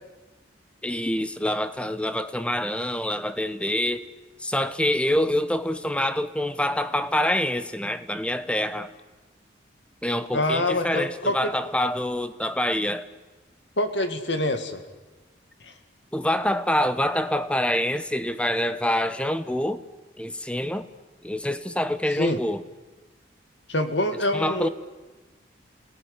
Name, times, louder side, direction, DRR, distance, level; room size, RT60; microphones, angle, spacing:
voice 1, 0.8-4.1 4.4-8.9 10.0-13.1 16.1-19.8 20.2-20.9 21.2-22.6 24.3-24.7, left 1 dB, 5° left, 0.9 m, -26 dB
voice 2, 10.3-11.5 13.8-14.8 15.6-15.7 22.2-22.4 23.7-24.7, left 1 dB, 75° left, 2.3 m, -25 dB
27.5 x 19.0 x 9.8 m
head